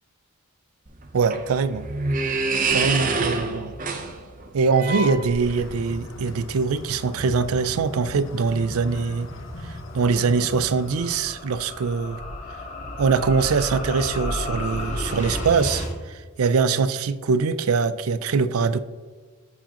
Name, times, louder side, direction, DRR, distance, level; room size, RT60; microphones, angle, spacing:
sound 1, 0.9-5.8, right 3 dB, 35° right, 0.7 m, -27 dB
voice 1, 1.1-1.9 2.7-3.7 4.5-9.3 9.6-12.2 13.0-18.8, right 5 dB, 75° right, 13 dB, 0.4 m, -23 dB
sound 2, 5.4-11.2, left 1 dB, 65° left, 0.9 m, -38 dB
sound 3, 8.1-15.9, left 1 dB, 30° left, 1.1 m, -33 dB
14.0 x 4.9 x 3.0 m, 1.5 s
head